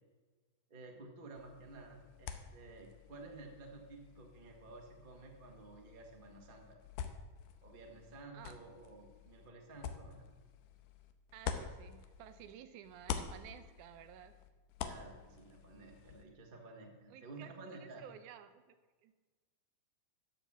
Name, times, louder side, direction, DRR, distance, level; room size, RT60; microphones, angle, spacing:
voice 1, 0.7-6.8 7.6-10.2 14.8-18.0, right 3 dB, 40° right, 1 dB, 0.7 m, -53 dB
sound 1, 1.4-12.5 12.8-16.3, left 8 dB, 85° left, 2.3 m, -47 dB
voice 2, 11.3-14.3 17.1-17.5 17.8-18.6 19.0-19.1, right 10 dB, 80° right, 10 dB, 2.0 m, -53 dB
12.5 x 5.8 x 7.2 m, 1.3 s
omnidirectional pair, 3.7 m